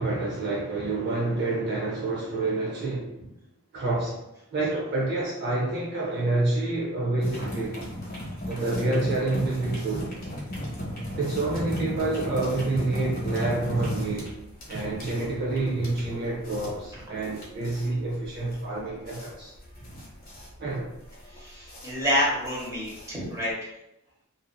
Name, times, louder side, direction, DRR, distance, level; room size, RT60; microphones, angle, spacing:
voice 1, 0.0-3.1 3.7-4.2 4.5-7.8 8.5-10.1 11.1-14.4 14.7-19.5 20.6-20.9, right 2 dB, 50° right, -4 dB, 0.5 m, -28 dB
sound 1, 7.2-23.5, equal, 40° left, 0.8 m, -36 dB
voice 2, 21.3-23.5, equal, 15° right, -7 dB, 0.9 m, -28 dB
2.5 x 2.5 x 2.2 m, 0.86 s
head